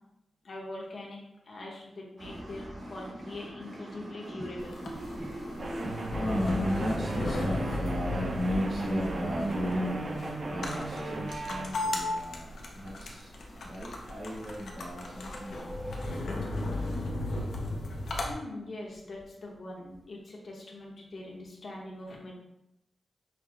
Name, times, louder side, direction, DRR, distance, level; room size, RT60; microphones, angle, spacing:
voice 1, 0.4-1.2 1.5-4.8 18.2-22.3, left 1 dB, 55° left, -2 dB, 0.9 m, -42 dB
voice 2, 2.2-12.5 12.8-13.2 13.7-15.7, equal, 75° right, -9 dB, 1.5 m, -35 dB
sound 1, 4.6-18.3, left 2 dB, 80° left, 0.6 m, -36 dB
sound 2, 5.6-11.6, right 2 dB, 45° right, 0.6 m, -36 dB
sound 3, 13.4-16.6, equal, ahead, 0.7 m, -47 dB
5.7 x 2.0 x 3.1 m, 0.88 s
wide cardioid pair, 140°, 0 cm